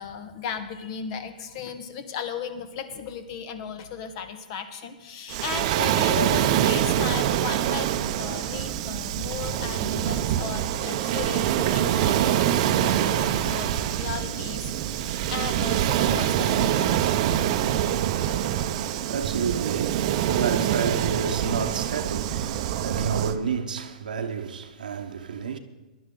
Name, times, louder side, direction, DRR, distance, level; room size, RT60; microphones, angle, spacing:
voice 1, 0.0-7.9 8.2-17.1, left 7 dB, 45° left, 1.3 m, -36 dB
Waves surf, 5.3-23.4, right 11 dB, 45° right, 0.7 m, -25 dB
voice 2, 17.7-25.6, right 6 dB, 80° right, 0.9 m, -30 dB
17.5 x 11.0 x 3.8 m
hypercardioid pair, 135°, 4 cm